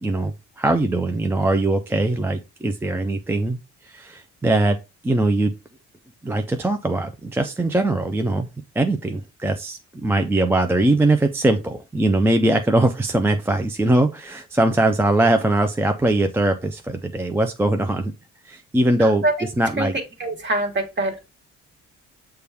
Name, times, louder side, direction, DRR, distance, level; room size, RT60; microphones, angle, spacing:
voice 1, 0.0-4.8 5.0-5.5 6.2-8.5 8.8-18.1 18.4-19.2 19.6-20.0, right 2 dB, 10° right, 6 dB, 0.3 m, -21 dB
voice 2, 19.0-19.3 19.8-19.9 20.2-21.2, right 2 dB, 35° right, 3 dB, 1.3 m, -24 dB
6.7 x 2.3 x 3.3 m, 0.26 s
cardioid pair, 90°, 30 cm